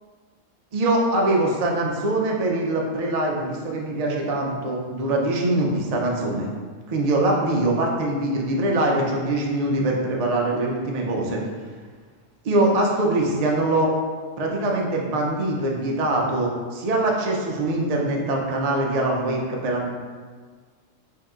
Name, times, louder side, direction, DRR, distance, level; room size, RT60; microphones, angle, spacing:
voice 1, 0.7-6.5 6.9-11.5 12.4-13.9 14.4-19.9, right 2 dB, 60° right, -1 dB, 0.4 m, -23 dB
3.3 x 2.7 x 3.6 m, 1.5 s
omnidirectional pair, 1.3 m